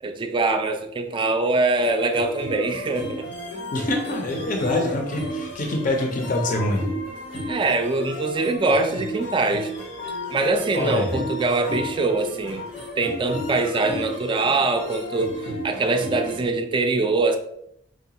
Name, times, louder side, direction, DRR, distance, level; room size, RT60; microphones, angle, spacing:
voice 1, 0.0-3.3 7.5-9.7 10.3-12.7 12.9-17.4, right 3 dB, 25° right, 6 dB, 0.3 m, -23 dB
sound 1, 1.8-16.4, equal, 75° left, 1.0 m, -33 dB
voice 2, 3.7-6.8 10.7-11.2, left 2 dB, 45° left, 2 dB, 0.6 m, -25 dB
4.7 x 2.2 x 2.8 m, 0.74 s
head